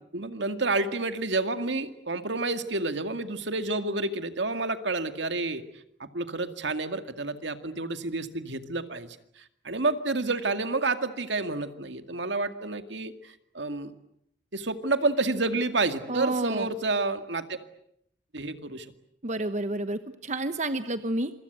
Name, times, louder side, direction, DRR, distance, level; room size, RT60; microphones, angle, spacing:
voice 1, 0.1-5.6 6.0-13.9 14.5-17.6 18.3-18.9, right 3 dB, 75° right, 8 dB, 2.1 m, -29 dB
voice 2, 16.1-16.7 19.2-21.3, right 2 dB, 40° right, 10 dB, 1.0 m, -30 dB
27.5 x 24.5 x 8.2 m, 0.74 s
head